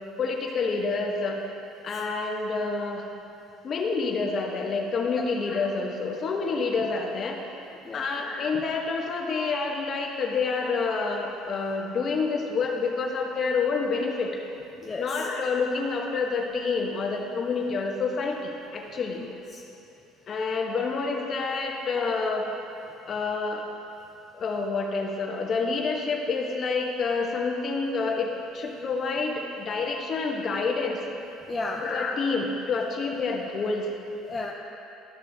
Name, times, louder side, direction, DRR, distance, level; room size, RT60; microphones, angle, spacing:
voice 1, 0.2-1.4 1.8-3.1 3.6-7.4 7.9-14.4 15.0-19.2 20.3-22.5 23.1-23.6 24.3-31.0 31.8-33.9, left 4 dB, 40° left, 1 dB, 1.1 m, -28 dB
voice 2, 19.2-19.6 31.5-31.8 34.2-34.5, left 3 dB, 20° left, -1 dB, 0.5 m, -33 dB
13.5 x 6.2 x 2.8 m, 2.8 s
cardioid pair, 110°, 0 cm